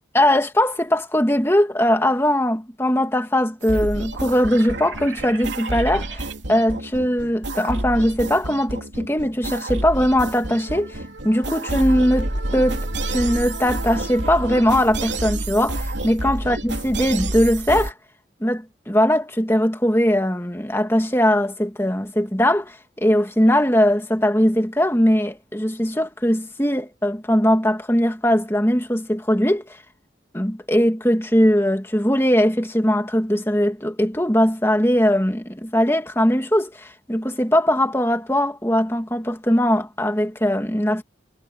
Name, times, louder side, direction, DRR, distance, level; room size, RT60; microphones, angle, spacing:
voice 1, 0.1-11.0 11.2-12.8 13.1-17.9 18.4-29.6 30.3-41.0, equal, 15° left, 2.3 m, -20 dB
sound 1, 3.6-17.9, right 1 dB, 75° right, 3.1 m, -29 dB
head